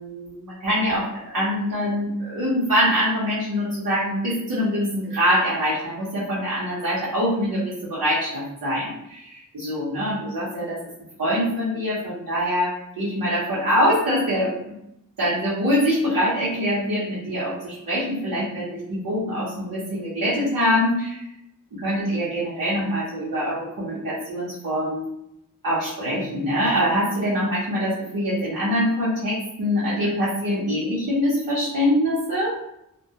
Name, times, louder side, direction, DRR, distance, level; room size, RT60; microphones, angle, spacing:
voice 1, 0.0-10.8 11.2-14.7 15.2-21.3 21.8-25.0 25.6-32.6, equal, 90° right, -9 dB, 0.8 m, -24 dB
2.2 x 2.2 x 2.7 m, 0.82 s
wide cardioid pair, 85°, 34 cm